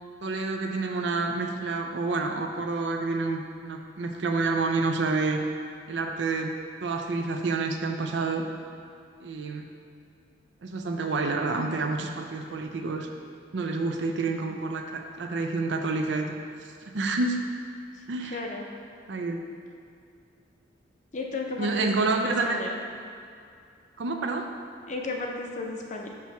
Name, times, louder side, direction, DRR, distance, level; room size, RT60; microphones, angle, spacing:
voice 1, 0.2-5.4 5.9-6.5 6.8-8.4 9.2-9.6 10.6-13.1 13.5-16.4 16.9-17.4 18.1-18.4 19.1-19.4 21.6-22.6 24.0-24.5, right 3 dB, 75° right, 4 dB, 0.5 m, -28 dB
voice 2, 18.3-18.7 21.1-22.8 24.9-26.1, left 3 dB, 40° left, 1 dB, 0.6 m, -34 dB
5.9 x 3.0 x 5.6 m, 2.5 s
head